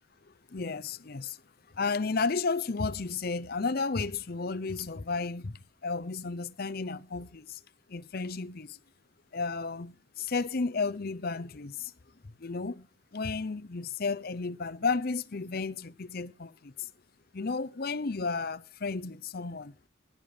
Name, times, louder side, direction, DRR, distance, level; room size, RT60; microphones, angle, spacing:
voice 1, 0.5-1.4 1.7-7.6 7.9-8.8 9.3-11.9 12.2-12.9 13.1-16.9 17.3-19.7, left 4 dB, 50° left, 0.7 m, -33 dB
16.5 x 10.5 x 5.0 m
head